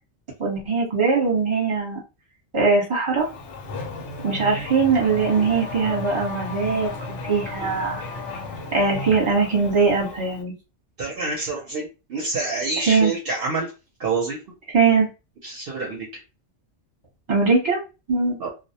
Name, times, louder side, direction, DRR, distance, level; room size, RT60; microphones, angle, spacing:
voice 1, 0.4-2.0 2.5-3.3 4.2-8.0 8.7-10.5 12.9-13.1 14.7-15.1 17.3-17.8 18.1-18.4, right 4 dB, 30° right, -2 dB, 0.9 m, -21 dB
Race car auto racing / Accelerating revving vroom, 3.2-10.4, left 3 dB, 85° left, 0.9 m, -34 dB
voice 2, 11.0-13.7 14.0-14.4 15.4-16.1 18.4-18.5, right 3 dB, 60° right, -1 dB, 0.8 m, -27 dB
2.2 x 2.0 x 2.7 m, 0.29 s
omnidirectional pair, 1.2 m